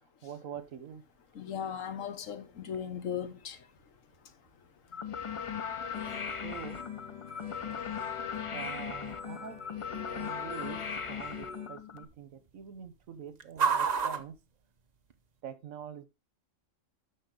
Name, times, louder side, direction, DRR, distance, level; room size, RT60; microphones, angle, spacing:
voice 1, 0.2-1.0 6.4-6.8 8.5-9.6 10.1-10.8 11.1-14.4 15.4-16.0, right 8 dB, 85° right, 1.4 m, -44 dB
sound 1, 0.6-15.4, right 6 dB, 40° right, 0.7 m, -40 dB
voice 2, 1.3-3.6, left 8 dB, 80° left, 1.3 m, -37 dB
sound 2, 4.9-12.0, left 7 dB, 60° left, 0.3 m, -38 dB
sound 3, 5.9-11.7, left 4 dB, 25° left, 3.3 m, -48 dB
12.5 x 4.6 x 3.8 m
omnidirectional pair, 1.3 m